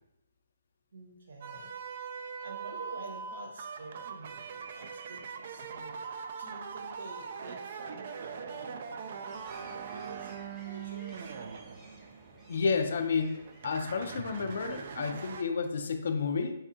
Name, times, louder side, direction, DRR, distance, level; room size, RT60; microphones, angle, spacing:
voice 1, 0.9-2.1 2.4-10.4 10.6-11.4, right 3 dB, 65° right, 1 dB, 0.8 m, -48 dB
sound 1, 1.4-12.8 13.3-15.4, right 6 dB, 50° right, 0.3 m, -42 dB
sound 2, 9.3-15.0, right 1 dB, 5° right, 0.7 m, -56 dB
voice 2, 12.5-13.4 13.6-16.5, left 5 dB, 60° left, 6 dB, 0.4 m, -30 dB
4.0 x 2.4 x 2.6 m, 0.85 s
figure-of-eight pair, 135°, 0 cm